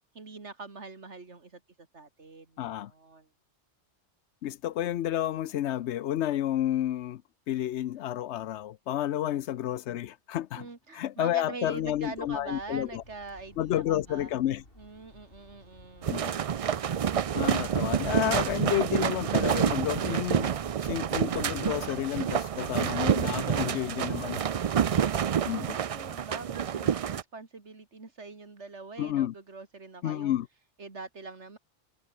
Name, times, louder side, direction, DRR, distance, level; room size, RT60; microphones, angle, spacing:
voice 1, 0.1-3.3 9.2-9.4 10.6-14.3 14.8-16.2 24.8-30.3 30.8-31.6, right 3 dB, 80° right, 2.9 m, -44 dB
voice 2, 2.6-2.9 4.4-7.2 7.5-10.6 10.9-13.0 13.6-14.6 16.1-16.3 17.3-20.5 20.8-24.4 25.5-25.8 29.0-29.3 30.0-30.5, left 12 dB, 80° left, 0.9 m, -30 dB
sound 1, 11.6-23.0, left 1 dB, 55° left, 7.7 m, -53 dB
sound 2, 16.0-27.2, right 8 dB, 55° right, 0.4 m, -28 dB
omnidirectional pair, 1.2 m